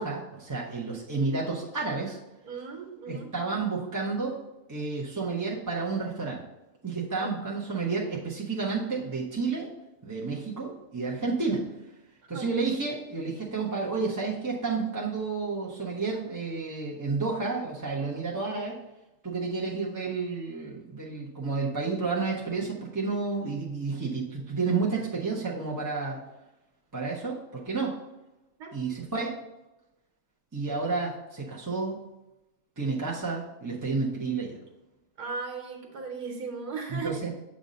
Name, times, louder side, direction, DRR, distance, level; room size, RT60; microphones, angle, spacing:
voice 1, 0.0-2.2 3.1-4.4 4.7-6.4 6.8-9.7 10.0-11.6 12.3-18.8 19.2-26.2 26.9-27.9 28.7-29.3 30.5-32.0 32.8-34.5 36.9-37.3, right 4 dB, 20° right, -4 dB, 0.6 m, -31 dB
voice 2, 2.4-3.3 7.2-7.3 12.3-12.5 28.6-28.7 35.2-37.2, right 5 dB, 90° right, 2 dB, 1.5 m, -37 dB
7.3 x 2.7 x 5.1 m, 0.94 s
omnidirectional pair, 1.5 m